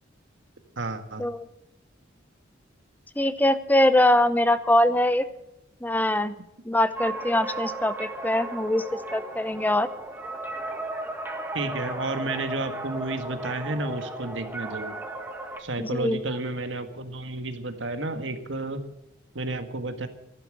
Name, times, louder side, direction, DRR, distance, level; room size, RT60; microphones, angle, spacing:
voice 1, 0.8-1.3 11.5-15.0 15.6-18.8 19.4-20.1, right 2 dB, 85° right, 8 dB, 1.7 m, -31 dB
voice 2, 3.2-5.3 5.8-6.3 6.6-8.9 9.1-9.9 15.8-16.4, left 1 dB, 10° left, 13 dB, 0.7 m, -23 dB
sound 1, 7.0-15.6, right 2 dB, 10° right, 1.7 m, -35 dB
14.5 x 11.5 x 7.7 m, 0.84 s
head